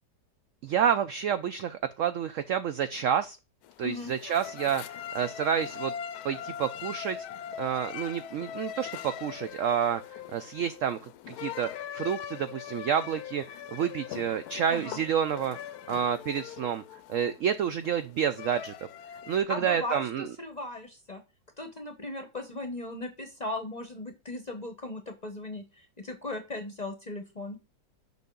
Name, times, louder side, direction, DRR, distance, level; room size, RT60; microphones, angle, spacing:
voice 1, 0.6-3.4 3.8-5.9 6.2-7.2 7.6-10.0 10.3-11.0 11.3-15.6 15.9-16.8 17.1-18.7 19.3-20.3, right 8 dB, 80° right, 11 dB, 0.7 m, -29 dB
sound 1, 3.6-19.4, left 10 dB, 70° left, 1.0 m, -41 dB
voice 2, 3.8-4.1 14.7-15.0 19.5-21.2 21.6-27.6, left 2 dB, 35° left, 6 dB, 0.7 m, -37 dB
7.1 x 5.9 x 3.8 m, 0.28 s
omnidirectional pair, 1.9 m